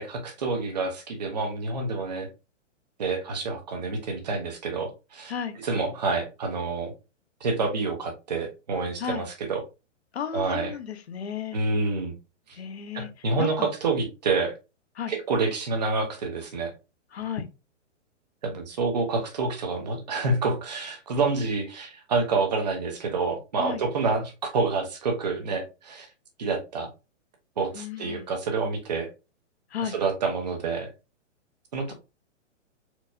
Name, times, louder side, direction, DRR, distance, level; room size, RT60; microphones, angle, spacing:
voice 1, 0.0-2.3 3.0-5.3 5.6-6.9 7.4-9.6 10.3-10.7 11.5-12.1 12.9-14.5 15.1-16.7 18.4-26.1 26.4-26.9 27.6-29.1 29.9-30.9 31.7-31.9, right 4 dB, 35° right, 0.9 m, -28 dB
voice 2, 10.1-11.6 12.5-13.7 15.0-15.1 17.1-17.5 23.6-23.8 27.7-28.3 29.7-29.9, left 7 dB, 55° left, 0.8 m, -34 dB
4.5 x 2.7 x 2.6 m
hypercardioid pair, 180°, 37 cm